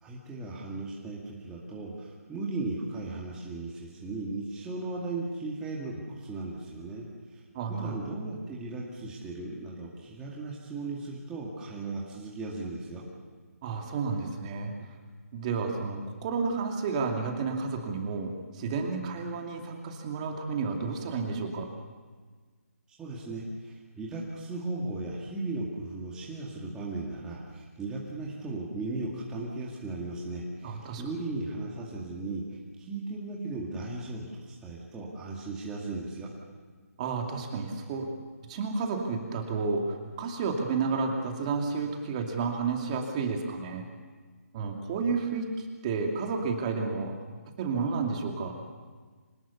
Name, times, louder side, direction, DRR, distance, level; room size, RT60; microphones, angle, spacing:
voice 1, 0.0-7.1 7.3-7.4 7.7-13.0 23.0-36.3, right 2 dB, 10° right, -4 dB, 2.1 m, -36 dB
voice 2, 7.5-8.0 13.6-14.7 15.3-21.7 30.6-31.0 37.0-38.1 38.5-43.8 44.5-47.2 47.6-48.6, right 4 dB, 25° right, 2 dB, 2.5 m, -31 dB
25.5 x 19.5 x 7.0 m, 1.4 s
hypercardioid pair, 160°, 8 cm